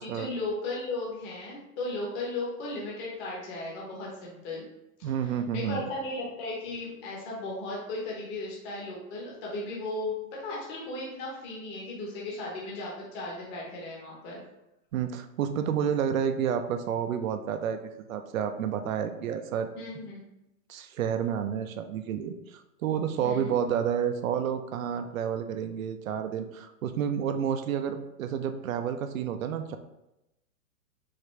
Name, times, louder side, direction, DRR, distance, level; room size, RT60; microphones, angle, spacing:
voice 1, 0.0-4.6 5.5-14.4 19.8-20.2 23.2-23.5, left 2 dB, 25° left, -4 dB, 1.0 m, -36 dB
voice 2, 5.0-5.9 14.9-19.7 20.7-29.8, right 8 dB, 70° right, 8 dB, 0.6 m, -30 dB
5.0 x 2.6 x 3.2 m, 0.91 s
hypercardioid pair, 145°, 43 cm